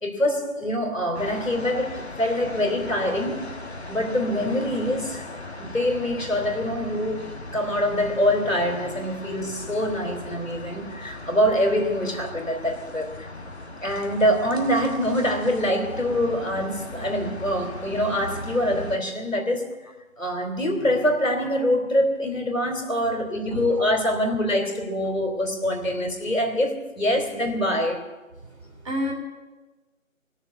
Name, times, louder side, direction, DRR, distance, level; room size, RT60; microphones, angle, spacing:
voice 1, 0.0-3.6 3.9-5.3 5.6-7.2 7.5-13.3 13.8-19.7 20.2-28.1, equal, 70° left, 3.2 m, -25 dB
sound 1, 1.1-19.0, left 2 dB, 50° left, 1.5 m, -38 dB
voice 2, 23.5-24.0 28.8-29.1, equal, 25° right, 2.7 m, -29 dB
18.0 x 7.0 x 9.3 m
figure-of-eight pair, 165°, 41 cm